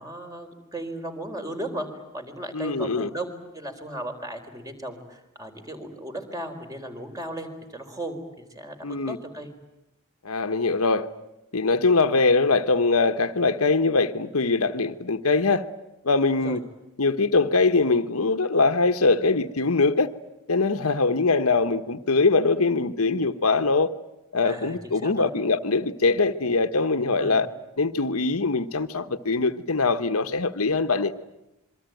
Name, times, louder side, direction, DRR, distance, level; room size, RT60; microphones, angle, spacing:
voice 1, 0.0-1.9 2.1-7.5 7.7-9.5 16.3-16.6 24.4-25.3 27.1-27.4, right 1 dB, 15° right, 4.1 m, -36 dB
voice 2, 2.5-3.1 8.8-9.2 10.2-11.1 11.5-15.7 16.0-16.6 17.0-20.1 20.5-23.9 24.3-27.5 27.8-31.1, left 3 dB, 85° left, 1.3 m, -22 dB
27.5 x 23.5 x 9.2 m
head